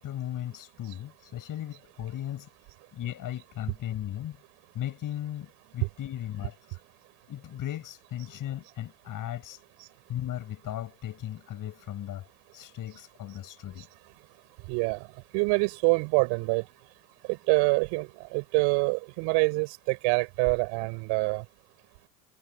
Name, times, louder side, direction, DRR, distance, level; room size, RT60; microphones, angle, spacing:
voice 1, 0.0-2.5 2.9-4.4 4.7-6.8 7.3-9.6 10.1-12.3 12.5-13.9, left 12 dB, 45° left, 7.6 m, -37 dB
voice 2, 14.7-15.1 15.3-16.6 17.3-21.4, right 32 dB, 65° right, 5.5 m, -26 dB
hypercardioid pair, 80°, 45 cm